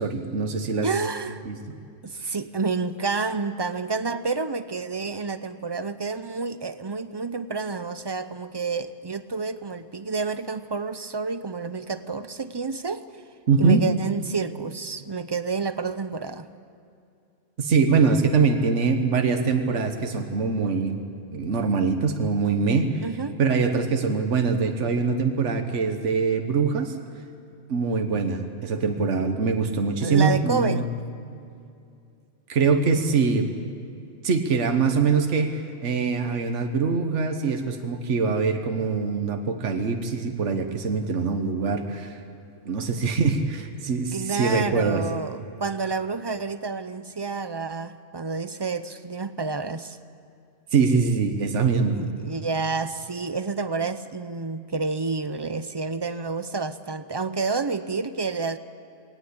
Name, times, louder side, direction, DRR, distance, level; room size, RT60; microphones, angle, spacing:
voice 1, 0.0-0.9 1.5-1.6 2.2-2.3 13.5-13.8 17.6-21.0 21.3-23.0 23.4-26.9 27.7-30.8 32.5-33.5 34.2-42.2 42.6-45.0 50.7-52.0, right 5 dB, 70° right, 5 dB, 1.6 m, -23 dB
voice 2, 0.8-1.4 2.0-13.2 13.6-16.5 23.0-23.4 30.0-30.9 44.1-50.0 52.0-58.6, right 4 dB, 35° right, 12 dB, 0.4 m, -29 dB
20.5 x 18.0 x 8.6 m, 2.6 s
omnidirectional pair, 1.3 m